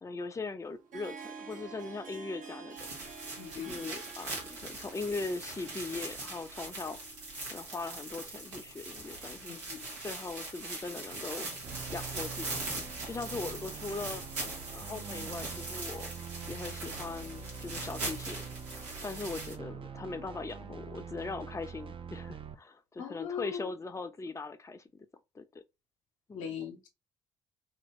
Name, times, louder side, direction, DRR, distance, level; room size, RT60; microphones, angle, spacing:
voice 1, 0.0-2.8 3.5-7.0 7.5-9.6 10.0-11.5 11.9-12.5 13.0-14.2 14.7-16.1 16.5-18.5 19.0-25.1 25.3-25.6 26.3-26.5, left 3 dB, 20° left, 0.5 m, -40 dB
Harp, 0.6-8.4, right 5 dB, 55° right, 0.8 m, -50 dB
sound 1, 2.8-19.6, right 2 dB, 85° right, 0.9 m, -41 dB
voice 2, 3.4-3.9 9.5-9.9 23.0-23.7 26.3-26.9, left 8 dB, 85° left, 0.6 m, -40 dB
sound 2, 11.6-22.5, right 6 dB, 35° right, 0.4 m, -45 dB
2.8 x 2.4 x 3.1 m
figure-of-eight pair, 40°, 16 cm